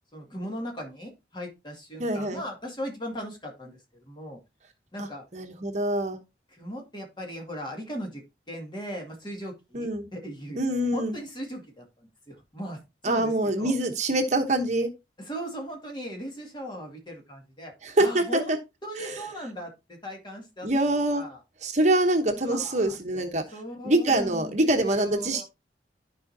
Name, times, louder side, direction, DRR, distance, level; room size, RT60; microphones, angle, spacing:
voice 1, 0.1-4.4 4.9-5.2 6.5-10.6 10.9-12.8 13.0-13.7 15.2-17.7 18.0-18.6 18.8-20.7 21.1-21.4 22.5-23.2 23.5-25.4, equal, 25° left, 1 dB, 2.2 m, -38 dB
voice 2, 2.0-2.4 5.0-5.1 5.3-6.2 9.7-10.1 10.6-11.2 13.0-14.9 17.8-18.4 19.0-19.2 20.6-21.2 21.6-23.4 23.8-25.4, right 1 dB, 40° right, 5 dB, 1.0 m, -25 dB
13.0 x 4.9 x 2.8 m, 0.24 s
head